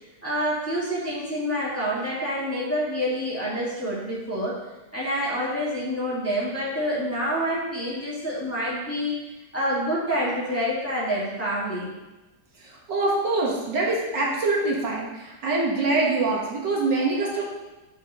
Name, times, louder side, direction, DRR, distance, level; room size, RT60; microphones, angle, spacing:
voice 1, 0.2-4.6 4.9-9.1 9.5-11.9, equal, 10° left, -7 dB, 1.9 m, -27 dB
voice 2, 12.6-17.4, right 3 dB, 70° right, -4 dB, 2.2 m, -24 dB
9.4 x 5.6 x 4.1 m, 1.1 s
omnidirectional pair, 2.0 m